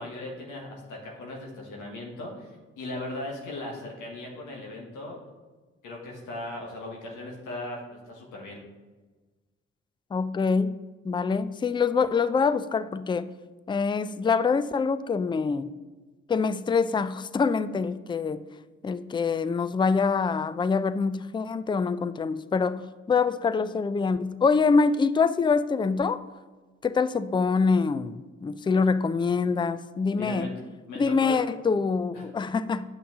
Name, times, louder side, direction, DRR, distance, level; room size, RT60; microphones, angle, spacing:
voice 1, 0.0-5.2 5.8-8.6 30.2-30.5 30.9-31.4 32.1-32.2, left 2 dB, 75° left, -1 dB, 1.4 m, -38 dB
voice 2, 10.1-10.7 11.0-13.3 13.7-15.7 16.3-18.4 18.8-22.8 23.1-26.2 26.8-30.5 31.0-32.8, left 5 dB, 15° left, 14 dB, 0.4 m, -25 dB
8.3 x 5.9 x 3.6 m, 1.3 s
hypercardioid pair, 45°, 31 cm